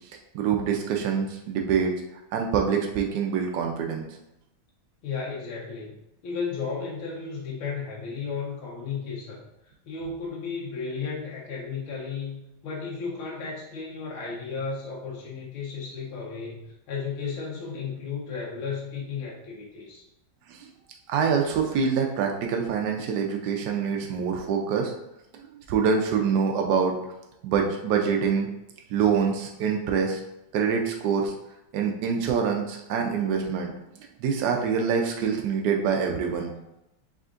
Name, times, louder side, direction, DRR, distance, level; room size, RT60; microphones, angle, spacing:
voice 1, 0.3-1.9 2.3-4.1 20.5-20.7 21.1-24.9 25.4-27.0 27.4-28.5 28.9-30.2 30.5-31.3 31.7-33.7 34.2-36.6, right 6 dB, 90° right, 2 dB, 0.9 m, -25 dB
voice 2, 5.0-6.0 6.2-9.4 9.8-20.0, left 5 dB, 75° left, -4 dB, 1.6 m, -34 dB
4.9 x 3.5 x 2.5 m, 0.89 s
omnidirectional pair, 2.3 m